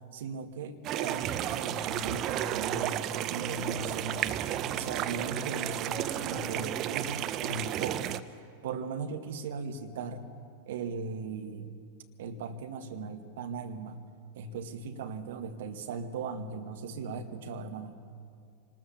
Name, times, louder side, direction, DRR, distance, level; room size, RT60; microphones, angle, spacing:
voice 1, 0.1-4.4 4.7-8.2 8.6-10.3 10.7-11.8 12.2-14.0 14.3-18.0, right 4 dB, 55° right, 6 dB, 1.7 m, -38 dB
sound 1, 0.8-8.2, right 11 dB, 35° right, 0.8 m, -33 dB
26.0 x 20.0 x 7.1 m, 2.3 s
figure-of-eight pair, 90°, 0 cm